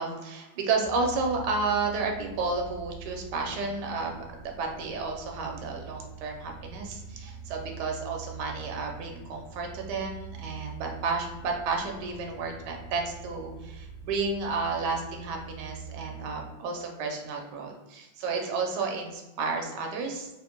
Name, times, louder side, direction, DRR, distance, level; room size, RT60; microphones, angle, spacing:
voice 1, 0.0-20.3, right 4 dB, 75° right, 1 dB, 1.2 m, -32 dB
sound 1, 0.8-16.4, right 6 dB, 75° left, 1.4 m, -44 dB
3.7 x 2.1 x 2.9 m, 1.0 s
omnidirectional pair, 1.9 m